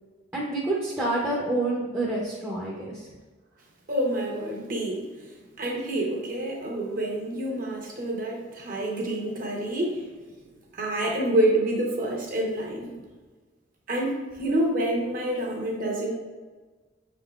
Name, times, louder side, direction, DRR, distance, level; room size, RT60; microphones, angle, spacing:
voice 1, 0.3-3.1, right 2 dB, 10° right, -6 dB, 0.6 m, -28 dB
voice 2, 3.9-5.1 5.6-10.0 10.7-13.0 13.9-16.2, right 1 dB, 45° right, -1 dB, 0.9 m, -27 dB
5.9 x 3.6 x 2.4 m, 1.4 s
head